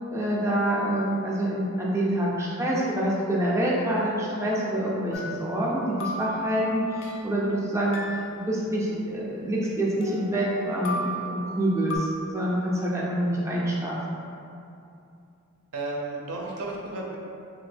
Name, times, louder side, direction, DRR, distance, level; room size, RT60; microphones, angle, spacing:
voice 1, 0.1-14.0, right 1 dB, 15° right, -5 dB, 0.3 m, -26 dB
sound 1, 5.1-7.4 7.9-9.7 10.0-12.0, equal, 60° left, 0.4 m, -37 dB
voice 2, 15.7-17.2, right 2 dB, 75° right, -2 dB, 0.6 m, -33 dB
2.8 x 2.5 x 3.2 m, 2.7 s
head